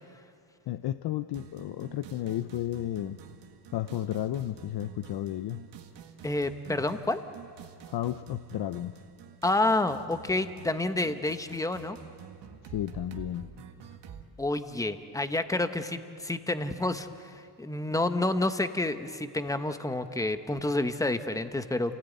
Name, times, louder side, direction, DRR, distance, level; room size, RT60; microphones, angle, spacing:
voice 1, 0.7-3.2 3.7-5.6 7.9-8.9 12.6-13.5, left 12 dB, 65° left, 11 dB, 0.7 m, -33 dB
sound 1, 1.3-14.3, right 7 dB, 75° right, 1.9 m, -48 dB
voice 2, 6.2-7.2 9.4-12.0 14.4-22.0, left 2 dB, 10° left, 9 dB, 0.9 m, -29 dB
28.5 x 17.5 x 9.3 m, 2.5 s
cardioid pair, 140°, 42 cm